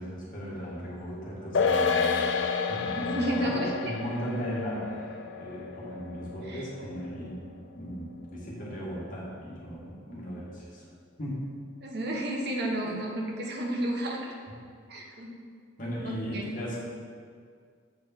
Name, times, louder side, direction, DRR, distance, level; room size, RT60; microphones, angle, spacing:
voice 1, 0.0-2.4 2.7-7.4 7.7-10.8 11.2-11.5 12.8-12.9 15.8-16.8, equal, 45° left, -5 dB, 1.7 m, -37 dB
sound 1, 1.5-8.2 8.5-8.6, left 5 dB, 65° left, 0.5 m, -30 dB
voice 2, 2.9-3.9 6.4-6.7 11.8-14.3 14.9-15.3 16.0-16.4, right 1 dB, 55° right, 0 dB, 1.0 m, -32 dB
7.2 x 4.8 x 4.4 m, 2.1 s
head